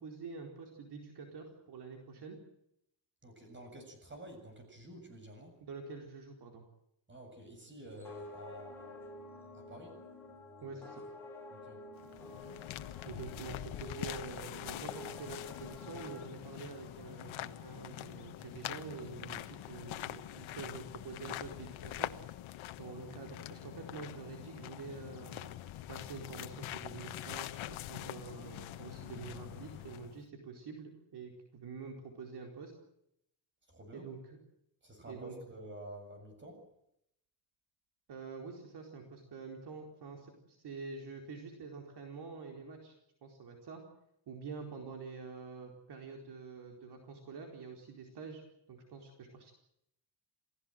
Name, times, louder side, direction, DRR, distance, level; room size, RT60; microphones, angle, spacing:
voice 1, 0.0-2.4 5.6-6.6 10.6-11.0 13.0-22.2 22.8-25.6 25.9-32.7 33.9-34.2 35.1-35.4 38.1-43.0 43.2-43.8 44.3-48.4 48.7-49.5, right 4 dB, 55° right, 2 dB, 4.5 m, -47 dB
voice 2, 3.2-5.6 7.1-9.0 9.5-10.0 11.5-11.8 33.7-34.1 34.8-36.6, right 1 dB, 25° right, 7 dB, 7.6 m, -50 dB
sound 1, 7.8-16.2, left 2 dB, 5° left, 6.1 m, -50 dB
sound 2, 12.0-30.2, left 14 dB, 75° left, 1.3 m, -44 dB
28.5 x 17.5 x 7.8 m, 0.78 s
cardioid pair, 150°, 48 cm